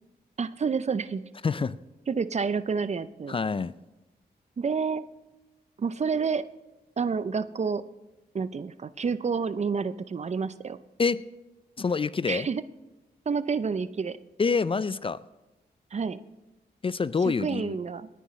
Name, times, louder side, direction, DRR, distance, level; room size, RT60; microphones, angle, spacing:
voice 1, 0.4-1.2 2.1-3.4 4.6-5.0 5.8-6.5 7.0-7.8 8.3-10.8 12.3-12.6 13.3-14.2 15.9-16.2 17.2-18.1, right 5 dB, 40° right, 15 dB, 0.6 m, -29 dB
voice 2, 1.4-1.8 3.3-3.7 11.0-11.2 11.8-12.5 14.4-15.2 16.8-17.8, left 5 dB, 30° left, 17 dB, 0.4 m, -26 dB
18.5 x 10.0 x 3.2 m, 1.0 s
cardioid pair, 60°, 17 cm